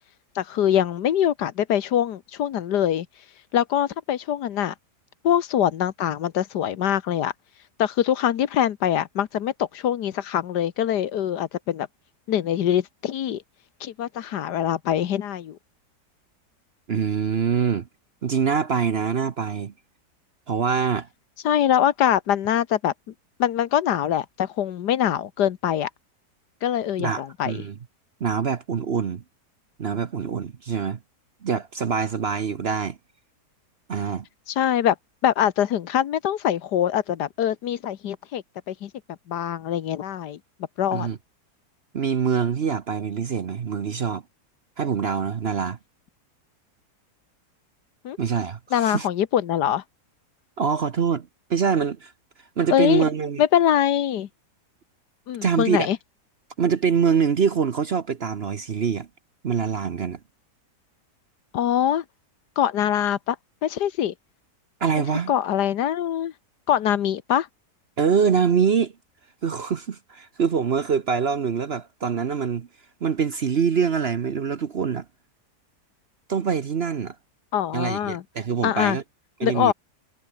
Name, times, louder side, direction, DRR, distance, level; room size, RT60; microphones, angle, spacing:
voice 1, 0.3-3.1 3.5-4.7 5.2-7.3 7.8-11.9 12.3-13.4 13.8-15.6 21.4-22.9 23.4-25.9 26.6-27.6 34.5-34.9 35.2-38.9 39.3-40.4 40.8-41.1 48.0-48.2 48.7-49.8 52.7-53.1 53.4-54.3 55.3-56.0 61.5-62.0 62.6-63.4 63.6-64.1 65.3-66.3 66.7-67.5 77.5-78.2 78.6-79.0 79.4-79.7, left 10 dB, 80° left, 1.6 m, -23 dB
voice 2, 16.9-17.9 18.2-19.7 20.5-21.1 27.0-27.8 28.2-29.2 29.8-31.0 31.4-33.0 33.9-34.3 40.9-41.2 41.9-44.2 44.8-45.8 48.2-49.1 50.6-52.1 52.6-53.4 55.4-55.9 56.6-59.1 59.4-60.2 64.8-65.3 68.0-68.9 69.4-72.7 73.0-75.0 76.3-77.2 77.7-79.0 79.4-79.7, right 6 dB, 45° right, 0.9 m, -24 dB
omnidirectional pair, 1.8 m